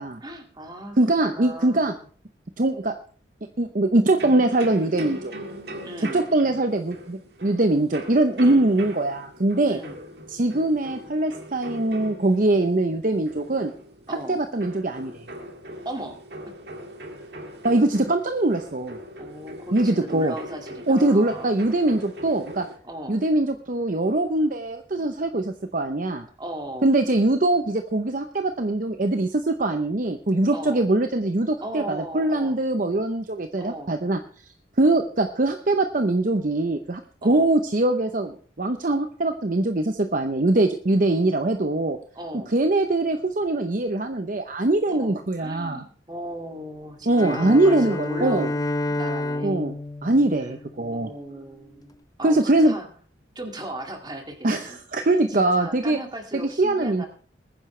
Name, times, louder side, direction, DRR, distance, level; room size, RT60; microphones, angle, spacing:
voice 1, 0.2-1.0 1.3-2.0 5.8-6.2 8.4-8.7 9.7-10.0 14.1-14.4 15.8-16.2 19.2-21.5 22.8-23.2 26.4-26.9 30.5-30.8 31.6-32.6 33.6-33.9 34.8-35.0 37.2-37.5 42.1-42.5 44.9-45.1 45.4-49.6 50.9-51.9 52.2-52.9 53.4-54.8 55.3-57.1, right 1 dB, 25° right, 3 dB, 2.2 m, -37 dB
voice 2, 1.0-1.9 2.6-3.0 3.6-5.3 6.0-9.8 10.3-13.7 14.3-15.2 17.6-19.0 19.7-20.3 20.9-22.7 23.1-26.2 26.8-34.2 34.8-42.0 42.5-45.8 47.1-48.5 49.4-49.8 50.0-51.1 52.2-52.8 54.4-56.0 56.3-57.1, right 2 dB, 45° right, 7 dB, 0.8 m, -22 dB
sound 1, 4.1-22.8, right 1 dB, 65° right, 2.0 m, -40 dB
Bowed string instrument, 47.1-51.3, left 2 dB, 20° left, 0.6 m, -30 dB
21.0 x 9.9 x 3.3 m, 0.42 s
head